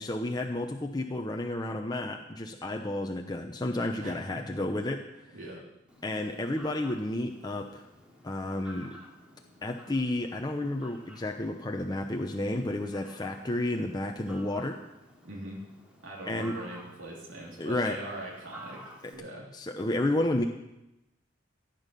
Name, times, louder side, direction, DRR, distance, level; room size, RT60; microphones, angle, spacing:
voice 1, 0.0-5.0 6.0-7.9 8.2-8.9 9.6-14.8 16.3-16.6 17.6-18.0 19.5-20.4, left 1 dB, 20° left, 3 dB, 0.8 m, -31 dB
voice 2, 4.0-4.4 5.3-5.6 15.2-15.6 16.0-19.5, right 1 dB, 90° right, -4 dB, 2.9 m, -42 dB
Fowl, 5.9-19.1, equal, 5° right, 2.7 m, -52 dB
15.0 x 9.2 x 6.8 m, 0.92 s
head